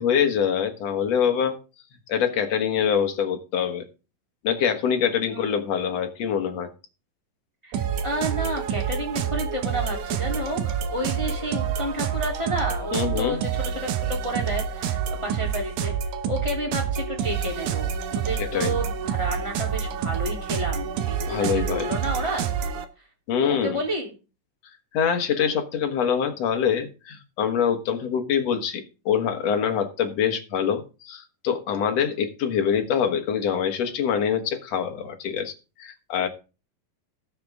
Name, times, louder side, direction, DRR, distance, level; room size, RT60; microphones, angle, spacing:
voice 1, 0.0-1.6 2.1-3.8 4.4-6.7 12.9-13.4 18.4-18.8 21.3-21.9 23.3-23.8 24.9-35.5 35.8-36.3, left 7 dB, 55° left, 5 dB, 2.4 m, -24 dB
voice 2, 5.3-5.9 7.6-15.9 16.2-22.5 23.0-23.1 23.4-24.1, right 1 dB, 10° left, 0 dB, 2.4 m, -31 dB
sound 1, 7.7-22.9, right 7 dB, 70° right, 2.4 m, -28 dB
18.5 x 6.9 x 3.6 m, 0.31 s
omnidirectional pair, 4.0 m